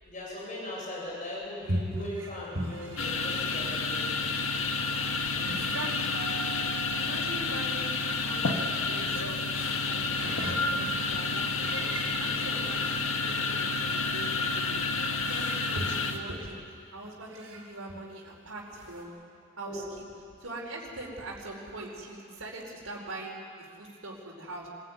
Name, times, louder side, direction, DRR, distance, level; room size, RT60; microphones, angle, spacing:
voice 1, 0.0-4.1 19.6-19.8, left 1 dB, 35° left, -5 dB, 7.3 m, -39 dB
sound 1, 1.6-18.1 18.4-18.5 18.7-19.0, right 1 dB, 60° right, 6.0 m, -41 dB
sound 2, 3.0-16.2, left 4 dB, 75° left, 1.6 m, -30 dB
voice 2, 5.4-6.3 6.6-7.9 8.2-10.1 10.3-11.7 12.1-13.0 13.3-14.7 14.9-15.0 15.3-19.1 19.6-20.0 20.4-24.7, right 2 dB, 80° right, -2 dB, 4.8 m, -42 dB
25.5 x 16.0 x 9.5 m, 2.4 s
head